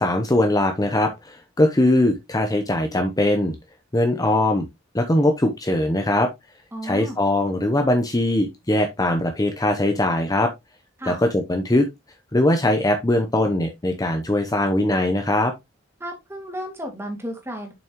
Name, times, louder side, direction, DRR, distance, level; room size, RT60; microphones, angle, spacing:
voice 1, 0.0-3.5 3.9-4.7 4.9-6.3 6.8-10.5 11.1-11.9 12.3-15.5, left 1 dB, 20° left, 0.8 m, -21 dB
voice 2, 6.7-7.2 11.0-11.2 16.0-17.7, equal, 15° right, 2.4 m, -33 dB
7.2 x 6.1 x 3.0 m
head